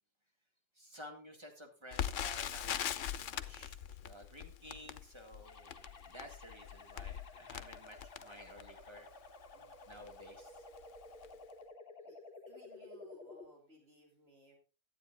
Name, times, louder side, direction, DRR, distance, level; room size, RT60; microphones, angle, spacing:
voice 1, 0.8-9.1 9.9-10.6, equal, 20° right, 2 dB, 2.1 m, -53 dB
Crackle, 1.9-8.9 9.5-9.6 9.9-10.1 10.7-11.0 11.2-11.3, left 10 dB, 85° left, 1.1 m, -41 dB
sound 1, 5.4-13.4, left 3 dB, 50° left, 1.4 m, -54 dB
voice 2, 12.5-14.6, right 1 dB, 55° right, -1 dB, 3.6 m, -60 dB
12.5 x 8.3 x 3.8 m, 0.35 s
omnidirectional pair, 1.3 m